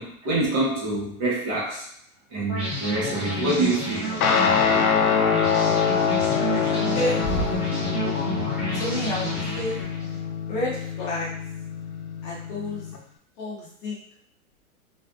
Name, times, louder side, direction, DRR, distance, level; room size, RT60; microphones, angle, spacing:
voice 1, 0.0-1.8 2.3-4.1, right 2 dB, 30° right, -7 dB, 1.0 m, -26 dB
sound 1, 2.5-10.2, equal, 5° right, 1.1 m, -30 dB
Guitar, 4.2-13.0, left 6 dB, 90° left, 0.6 m, -25 dB
voice 2, 6.6-7.6 8.7-9.8 10.5-11.3 12.2-12.8 13.4-14.0, left 1 dB, 35° left, -5 dB, 0.7 m, -30 dB
2.5 x 2.4 x 2.3 m, 0.67 s
hypercardioid pair, 140°, 42 cm